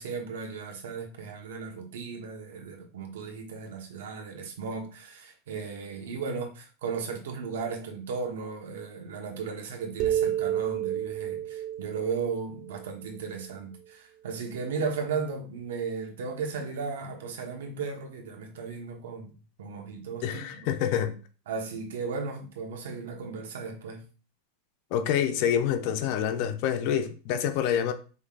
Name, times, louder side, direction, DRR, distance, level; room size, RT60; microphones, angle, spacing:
voice 1, 0.0-19.3 19.6-20.7 21.5-24.0, right 5 dB, 80° right, 1.2 m, -35 dB
sound 1, 10.0-13.5, right 11 dB, 35° right, 0.4 m, -31 dB
voice 2, 20.2-21.1 24.9-27.9, left 9 dB, 40° left, 0.5 m, -27 dB
5.2 x 3.7 x 2.4 m
supercardioid pair, 180°, 0 cm